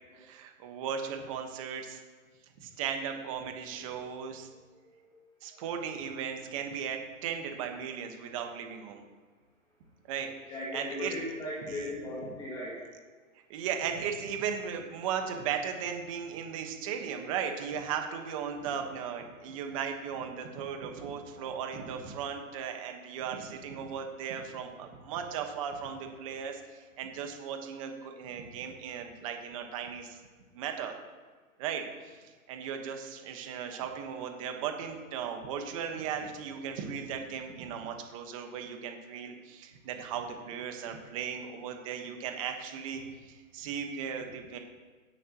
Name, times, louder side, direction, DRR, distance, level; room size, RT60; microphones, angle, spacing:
voice 1, 0.1-2.0 2.6-4.5 5.4-9.0 10.1-10.3 10.7-11.1 13.5-30.2 30.5-31.0 31.6-44.6, right 7 dB, 25° right, 4 dB, 1.4 m, -37 dB
voice 2, 4.5-5.1 5.6-6.0 10.5-13.2, left 1 dB, 10° left, -5 dB, 2.1 m, -39 dB
16.5 x 11.0 x 3.1 m, 1.4 s
hypercardioid pair, 160°, 42 cm